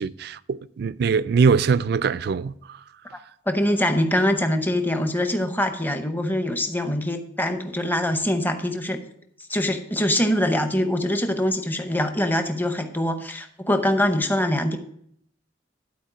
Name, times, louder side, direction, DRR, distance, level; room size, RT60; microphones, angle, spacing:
voice 1, 0.0-2.5, right 5 dB, 55° right, 0.3 m, -22 dB
voice 2, 3.5-9.0 9.5-14.8, left 1 dB, 10° left, 0.7 m, -23 dB
11.5 x 4.4 x 6.1 m
head